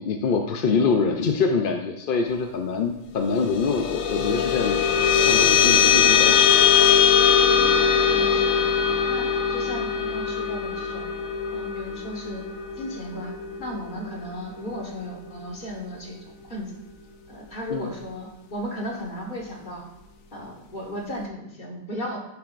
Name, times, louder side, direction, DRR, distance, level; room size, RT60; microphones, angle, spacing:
voice 1, 0.0-6.5 17.7-17.9, left 5 dB, 55° left, 3 dB, 0.6 m, -25 dB
sound 1, 3.3-14.1, left 7 dB, 75° left, 1.1 m, -21 dB
voice 2, 7.9-8.7 9.1-11.1 11.5-12.4 12.8-13.3 13.6-16.8 17.3-19.9 20.3-22.2, equal, 35° left, -1 dB, 1.6 m, -35 dB
10.5 x 7.0 x 2.5 m, 0.88 s
omnidirectional pair, 1.5 m